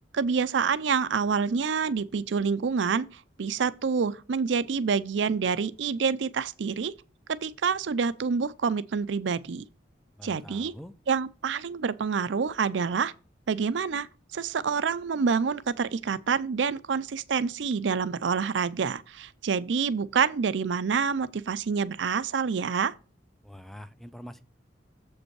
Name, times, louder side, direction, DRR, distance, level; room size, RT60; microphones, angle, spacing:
voice 1, 0.1-6.9 7.4-9.6 10.2-10.7 11.1-13.1 13.5-14.1 14.3-22.9, right 5 dB, 75° right, 0.5 m, -27 dB
voice 2, 10.2-10.9 23.4-24.4, equal, ahead, 0.5 m, -44 dB
7.4 x 5.2 x 4.6 m
head